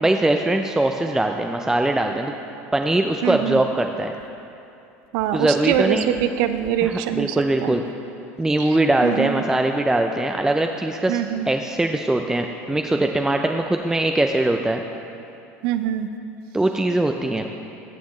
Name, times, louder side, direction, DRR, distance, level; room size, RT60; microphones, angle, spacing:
voice 1, 0.0-2.3 2.7-4.1 5.3-6.1 6.8-7.8 8.4-14.8 16.5-17.5, right 1 dB, 10° right, 4 dB, 0.4 m, -21 dB
voice 2, 3.2-3.6 5.1-7.4 7.6-7.7 9.0-9.4 11.1-11.5 15.6-16.1, right 11 dB, 65° right, 10 dB, 0.5 m, -23 dB
14.5 x 7.0 x 3.1 m, 2.7 s
hypercardioid pair, 90°, 7 cm